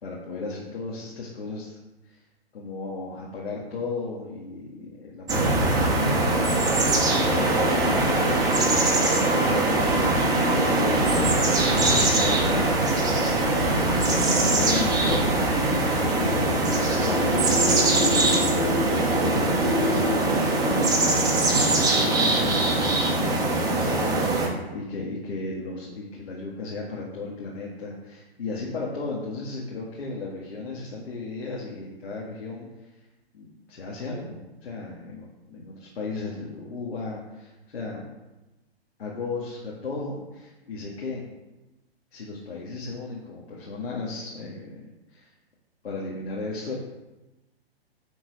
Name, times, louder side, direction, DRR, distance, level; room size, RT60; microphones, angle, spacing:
voice 1, 0.0-1.8 2.1-2.2 2.5-8.3 9.1-10.0 10.5-11.2 11.5-15.3 15.7-16.6 17.0-32.9 33.3-38.0 39.0-41.3 42.1-44.8 45.1-45.3 45.8-46.7, left 3 dB, 85° left, -4 dB, 2.0 m, -35 dB
sound 1, 5.3-24.5, right 2 dB, 10° right, 1.1 m, -22 dB
10.0 x 3.9 x 5.4 m, 1.1 s
hypercardioid pair, 135°, 31 cm